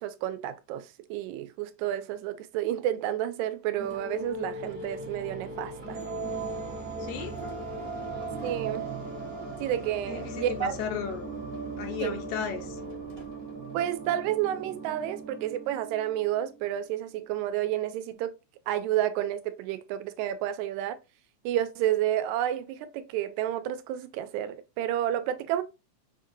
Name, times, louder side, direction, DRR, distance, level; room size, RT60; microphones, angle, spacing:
voice 1, 0.0-6.0 8.4-8.9 9.6-10.8 12.0-12.2 13.7-18.3 18.7-21.0 21.4-25.6, right 12 dB, 85° right, 1.9 m, -30 dB
sound 1, 3.7-16.7, right 3 dB, 60° right, 0.6 m, -38 dB
voice 2, 7.0-7.4 10.1-11.3 11.8-12.8, left 8 dB, 80° left, 2.1 m, -35 dB
5.7 x 2.6 x 2.6 m
omnidirectional pair, 3.3 m